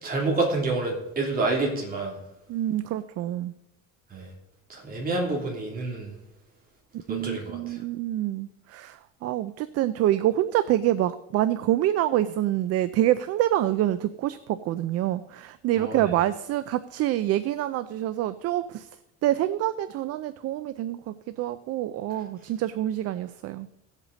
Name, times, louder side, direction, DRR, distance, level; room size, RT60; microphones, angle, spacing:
voice 1, 0.0-2.1 4.1-4.3 4.7-6.1 7.1-7.8 15.8-16.1, right 3 dB, 30° right, -1 dB, 3.0 m, -28 dB
voice 2, 2.5-3.5 7.1-18.9 19.2-23.7, right 13 dB, 50° right, 13 dB, 0.5 m, -26 dB
17.0 x 8.1 x 4.0 m, 0.88 s
cardioid pair, 145°, 31 cm